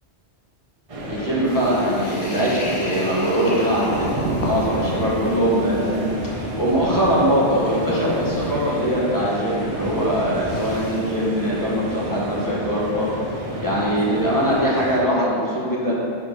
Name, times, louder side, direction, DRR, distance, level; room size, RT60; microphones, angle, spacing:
sound 1, 0.9-15.0, right 1 dB, 35° right, 0.7 m, -32 dB
voice 1, 1.1-13.1 13.6-15.9, equal, 20° left, -7 dB, 1.2 m, -22 dB
sound 2, 1.5-11.3, left 1 dB, 80° left, 1.2 m, -35 dB
sound 3, 3.9-12.5, right 3 dB, 80° right, 0.9 m, -33 dB
4.6 x 4.5 x 4.8 m, 2.5 s
omnidirectional pair, 1.2 m